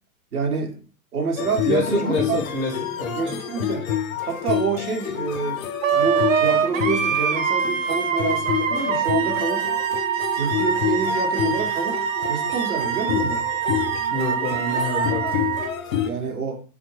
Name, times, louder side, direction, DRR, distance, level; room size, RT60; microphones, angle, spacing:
voice 1, 0.3-0.8 1.1-2.4 3.1-3.9 4.2-5.6 5.9-9.7 10.3-12.0 12.3-13.5 16.0-16.6, right 5 dB, 80° right, 3 dB, 0.9 m, -27 dB
sound 1, 1.4-16.1, left 9 dB, 70° left, 0.5 m, -28 dB
voice 2, 1.6-3.3 14.1-15.2, left 2 dB, 10° left, -3 dB, 0.4 m, -26 dB
Wind instrument woodwind instrument, 5.8-15.7, right 8 dB, 60° right, 0.5 m, -24 dB
2.7 x 2.1 x 3.1 m, 0.41 s
figure-of-eight pair, 105°, 44 cm